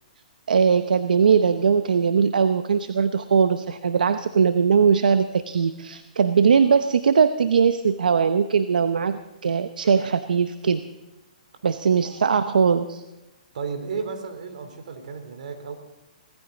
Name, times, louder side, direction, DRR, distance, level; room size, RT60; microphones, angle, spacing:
voice 1, 0.5-10.8 11.6-13.0, right 6 dB, 85° right, 11 dB, 0.8 m, -20 dB
voice 2, 13.5-15.8, right 5 dB, 65° right, 5 dB, 3.6 m, -33 dB
18.5 x 14.5 x 4.0 m, 1.0 s
hypercardioid pair, 140°, 4 cm